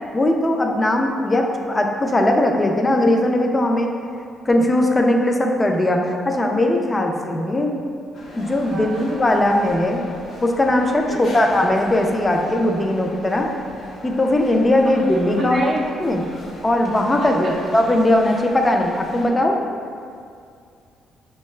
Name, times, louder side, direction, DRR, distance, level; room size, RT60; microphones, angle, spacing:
voice 1, 0.1-3.9 4.5-7.7 8.4-10.0 10.4-13.5 14.0-15.7 16.0-16.2 16.6-19.6, left 1 dB, 20° left, 2 dB, 0.4 m, -19 dB
sound 1, 8.1-19.3, left 1 dB, 60° left, 0.7 m, -39 dB
voice 2, 8.7-9.1 11.1-11.3 14.8-15.0 15.4-15.8 17.2-17.6, right 3 dB, 40° right, -2 dB, 0.4 m, -30 dB
5.5 x 2.2 x 3.1 m, 2.3 s
cardioid pair, 90°, 0 cm